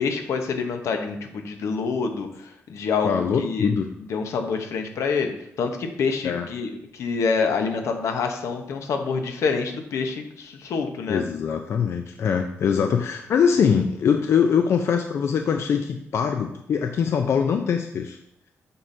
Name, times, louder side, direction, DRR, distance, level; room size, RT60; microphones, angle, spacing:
voice 1, 0.0-3.7 4.1-11.2, left 5 dB, 90° left, 5 dB, 0.8 m, -27 dB
voice 2, 3.0-3.9 6.2-6.5 11.1-18.2, left 7 dB, 65° left, 5 dB, 0.4 m, -22 dB
7.7 x 5.7 x 2.6 m, 0.77 s
cardioid pair, 115°, 5 cm